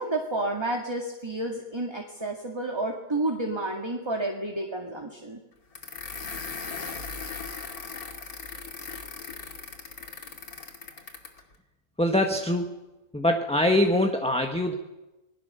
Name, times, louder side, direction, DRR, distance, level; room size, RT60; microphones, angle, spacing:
voice 1, 0.0-5.4, right 2 dB, 20° right, 1 dB, 2.1 m, -30 dB
sound 1, 5.7-11.4, left 4 dB, 85° left, 2.9 m, -38 dB
voice 2, 12.0-12.7 13.1-14.7, left 1 dB, 5° left, 4 dB, 1.2 m, -23 dB
27.0 x 20.5 x 6.8 m, 1.0 s
omnidirectional pair, 1.5 m